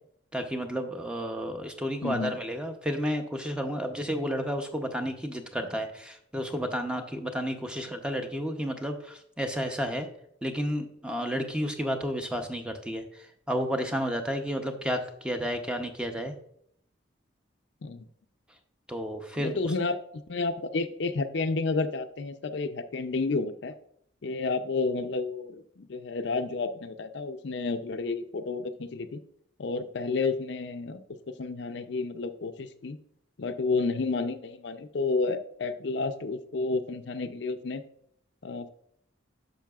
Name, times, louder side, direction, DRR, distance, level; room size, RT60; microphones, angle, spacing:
voice 1, 0.3-10.1 10.4-16.3 18.9-19.5, equal, 5° right, 5 dB, 0.6 m, -31 dB
voice 2, 2.0-2.4 17.8-18.1 19.4-20.0 20.3-23.7 24.2-29.2 29.6-31.0 31.4-33.0 33.4-37.8 38.4-38.7, left 3 dB, 60° left, 9 dB, 0.5 m, -31 dB
10.0 x 6.8 x 2.4 m, 0.69 s
head